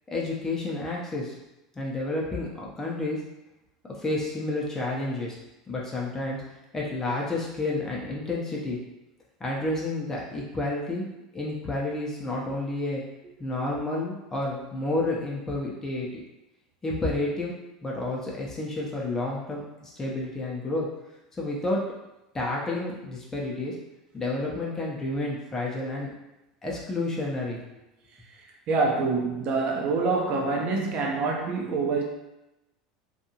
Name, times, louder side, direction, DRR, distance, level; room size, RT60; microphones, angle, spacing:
voice 1, 0.1-1.3 1.8-3.2 4.0-5.4 5.7-6.4 6.7-8.8 9.4-11.1 11.3-13.0 13.4-16.1 16.8-17.5 17.8-20.9 21.4-21.8 22.3-23.8 24.1-26.1 26.6-27.6, left 2 dB, 15° left, -4 dB, 0.6 m, -30 dB
voice 2, 28.7-32.0, right 3 dB, 45° right, 0 dB, 0.6 m, -26 dB
2.6 x 2.4 x 2.8 m, 0.95 s
figure-of-eight pair, 75°, 3 cm